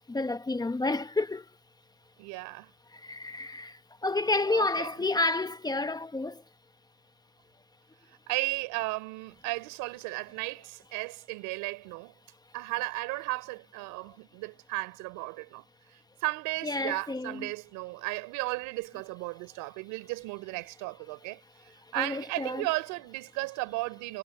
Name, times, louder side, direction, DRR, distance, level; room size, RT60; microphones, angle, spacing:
voice 1, 0.0-1.4 2.9-6.4 16.6-17.5 22.0-22.7, left 2 dB, 10° left, 1.0 m, -30 dB
voice 2, 2.2-2.7 4.5-5.1 8.1-12.1 12.5-24.2, right 23 dB, 85° right, 4.1 m, -35 dB
cardioid pair, 120°, 31 cm